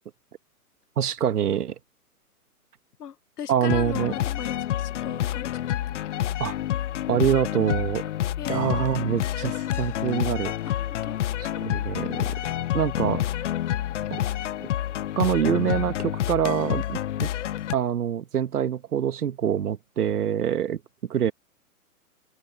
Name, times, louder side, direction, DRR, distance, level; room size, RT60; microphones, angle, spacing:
voice 1, 1.0-1.7 3.5-4.1 6.4-6.6 7.1-8.0 8.5-10.5 11.6-12.3 12.7-13.2 14.1-14.2 15.2-17.3 17.7-20.8 21.1-21.3, right 9 dB, 80° right, 1.6 m, -25 dB
voice 2, 3.0-5.6 8.4-8.6 10.6-11.2, left 8 dB, 85° left, 1.3 m, -37 dB
sound 1, 3.7-17.7, left 12 dB, 55° left, 0.5 m, -28 dB
open air
hypercardioid pair, 155°, 45 cm